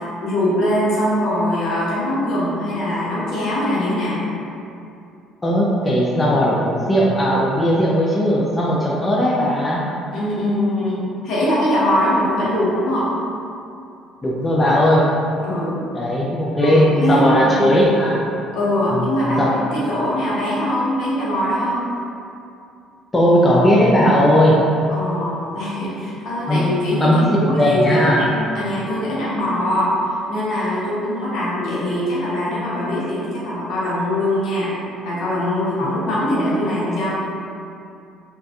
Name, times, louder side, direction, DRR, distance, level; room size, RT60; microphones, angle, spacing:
voice 1, 0.2-4.3 10.1-13.1 15.4-15.8 16.6-17.9 18.5-21.9 24.9-30.0 30.3-34.7 35.0-37.1, left 1 dB, 65° left, -7 dB, 0.7 m, -22 dB
voice 2, 5.4-9.8 14.2-15.1 15.9-18.2 18.9-19.1 19.4-19.6 23.1-24.6 26.5-26.6 27.0-28.2, equal, 20° left, -5 dB, 0.3 m, -17 dB
2.5 x 2.3 x 2.3 m, 2.6 s
cardioid pair, 95°, 0 cm